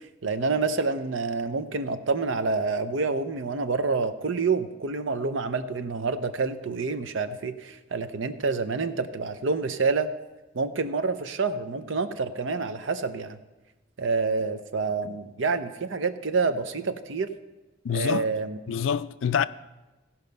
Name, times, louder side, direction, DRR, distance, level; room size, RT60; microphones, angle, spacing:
voice 1, 0.2-10.1 10.5-13.4 14.0-17.3 17.9-18.6, right 4 dB, 70° right, 0.7 m, -28 dB
voice 2, 17.8-18.3 18.7-19.5, left 7 dB, 70° left, 0.4 m, -26 dB
16.5 x 5.6 x 5.3 m
head